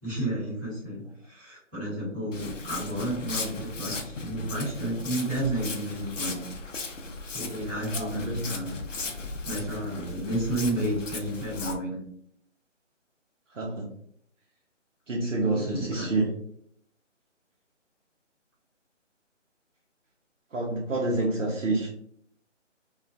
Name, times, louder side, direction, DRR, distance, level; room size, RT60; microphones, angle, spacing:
voice 1, 0.0-6.4 7.3-8.8 9.4-12.0 15.5-16.1, right 1 dB, 5° right, -19 dB, 0.7 m, -31 dB
Walk footsteps, 2.3-11.7, left 3 dB, 80° left, 0.6 m, -37 dB
voice 2, 7.9-8.5 13.5-13.9 15.1-16.3 20.5-21.9, right 2 dB, 80° right, -3 dB, 0.8 m, -28 dB
2.4 x 2.3 x 2.2 m, 0.65 s
figure-of-eight pair, 150°, 37 cm